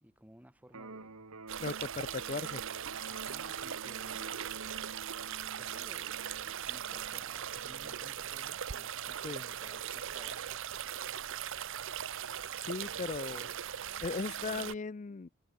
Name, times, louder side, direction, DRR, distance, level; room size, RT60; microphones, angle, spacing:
voice 1, 0.0-1.3 3.0-5.0 5.6-6.2 6.7-10.8 12.8-13.5, equal, 5° right, 1.4 m, -57 dB
Electric guitar, 0.7-8.7, right 3 dB, 80° right, 2.0 m, -50 dB
sound 1, 1.5-14.7, right 9 dB, 60° right, 0.7 m, -39 dB
voice 2, 1.6-2.6 9.2-9.4 12.6-13.5 14.0-15.3, left 4 dB, 35° left, 0.4 m, -38 dB
head